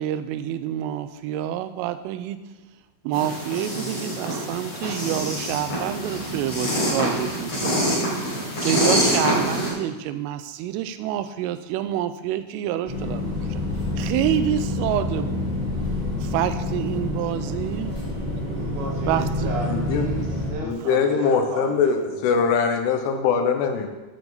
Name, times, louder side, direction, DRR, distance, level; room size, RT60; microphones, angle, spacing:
voice 1, 0.0-2.4 3.0-7.8 8.3-13.6 14.0-15.5 16.2-17.9 19.1-19.5 20.8-20.9, right 11 dB, 90° right, 11 dB, 3.3 m, -27 dB
sound 1, 3.1-9.7, equal, 35° left, 5.3 m, -25 dB
sound 2, 12.9-20.5, left 1 dB, 15° right, 1.5 m, -27 dB
voice 2, 18.5-22.6, right 2 dB, 60° right, -1 dB, 3.0 m, -34 dB
voice 3, 19.7-20.1 20.6-23.9, left 6 dB, 80° left, 5 dB, 3.4 m, -22 dB
12.0 x 9.8 x 4.0 m, 1.1 s
omnidirectional pair, 5.7 m